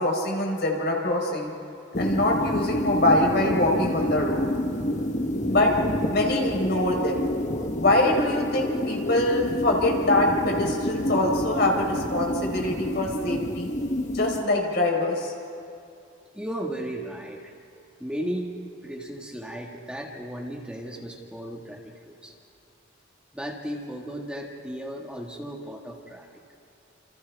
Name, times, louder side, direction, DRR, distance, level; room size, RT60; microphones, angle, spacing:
voice 1, 0.0-1.5 2.0-4.5 5.5-5.7 6.1-7.3 7.8-13.7 14.1-15.3, left 1 dB, 60° left, 0 dB, 4.3 m, -24 dB
sound 1, 1.9-14.4, left 1 dB, 40° left, 1.1 m, -28 dB
voice 2, 16.3-17.4 18.0-18.5 18.8-22.3 23.3-26.3, right 1 dB, 5° right, -1 dB, 1.7 m, -35 dB
29.0 x 27.5 x 3.5 m, 2.7 s
head